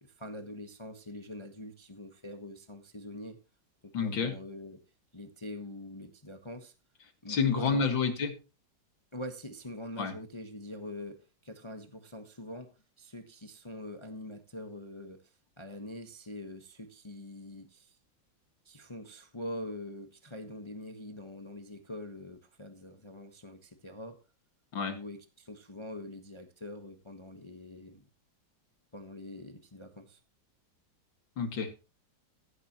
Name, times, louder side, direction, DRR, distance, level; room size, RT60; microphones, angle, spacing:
voice 1, 0.0-3.4 3.8-4.8 5.1-6.7 7.2-7.9 9.1-18.0 18.6-24.2 24.8-28.1 28.9-30.2, left 1 dB, 20° left, 1.1 m, -44 dB
voice 2, 3.9-4.3 7.3-8.3 10.0-10.1 24.7-24.9 31.4-31.8, left 5 dB, 80° left, 2.7 m, -29 dB
15.5 x 11.5 x 3.0 m
omnidirectional pair, 2.1 m